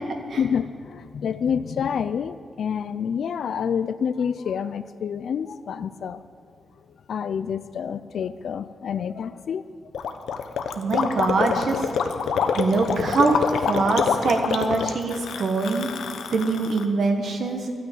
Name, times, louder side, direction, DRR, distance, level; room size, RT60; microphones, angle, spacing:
voice 1, 0.4-6.2 7.1-9.6, left 7 dB, 65° left, 12 dB, 0.4 m, -28 dB
Gurgling, 9.9-16.8, left 6 dB, 85° left, 0.9 m, -26 dB
voice 2, 10.7-11.9 12.5-15.9 16.3-17.7, right 3 dB, 55° right, 3 dB, 1.2 m, -23 dB
12.5 x 9.4 x 9.0 m, 2.3 s
wide cardioid pair, 150°, 0 cm